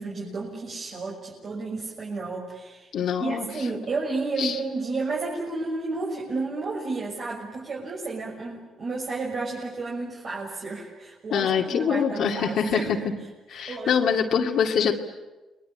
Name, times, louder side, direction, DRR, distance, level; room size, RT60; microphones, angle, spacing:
voice 1, 0.0-2.9 3.2-12.9 13.5-14.0, right 3 dB, 50° right, -4 dB, 6.6 m, -32 dB
voice 2, 2.9-3.5 4.4-4.6 11.3-13.0 13.5-15.0, left 7 dB, 75° left, 0 dB, 2.4 m, -24 dB
29.5 x 22.0 x 8.9 m, 1.2 s
cardioid pair, 90°, 0 cm